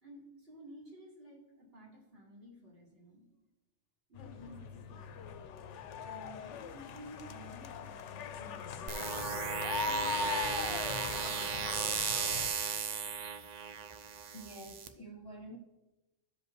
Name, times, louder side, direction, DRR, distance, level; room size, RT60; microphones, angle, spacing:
voice 1, 0.0-3.2 4.1-5.3 6.0-9.1 9.8-12.0, equal, 50° right, 2.1 m, -53 dB
sound 1, 4.2-12.5, left 6 dB, 70° left, 0.8 m, -40 dB
sound 2, 8.9-14.9, right 7 dB, 75° right, 0.4 m, -36 dB
voice 2, 14.3-15.6, right 1 dB, 35° left, 0.4 m, -48 dB
13.5 x 5.1 x 3.1 m
omnidirectional pair, 1.3 m